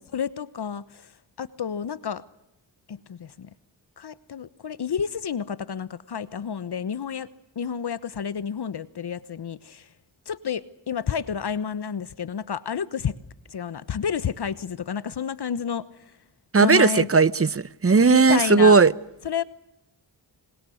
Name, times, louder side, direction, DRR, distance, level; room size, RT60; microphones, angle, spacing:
voice 1, 0.1-1.1 1.4-2.2 2.9-3.5 4.0-7.3 7.6-9.9 10.3-13.1 13.5-15.8 16.6-17.1 18.1-18.8 19.2-19.4, left 7 dB, 60° left, 1.2 m, -30 dB
voice 2, 16.5-18.9, right 4 dB, 30° right, 0.9 m, -17 dB
28.5 x 25.0 x 6.4 m
cardioid pair, 55°, 44 cm